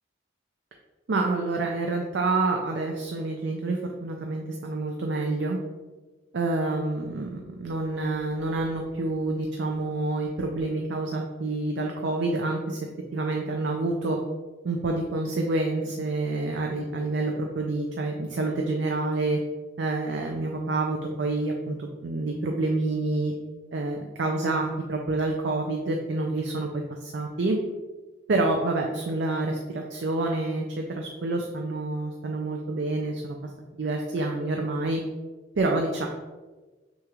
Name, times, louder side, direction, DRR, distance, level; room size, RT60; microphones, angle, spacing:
voice 1, 1.1-5.6 6.3-14.2 14.6-19.4 19.8-23.3 23.7-27.6 28.3-33.4 33.8-35.0 35.6-36.1, right 2 dB, 70° right, 2 dB, 0.4 m, -28 dB
6.3 x 2.4 x 3.0 m, 1.3 s
head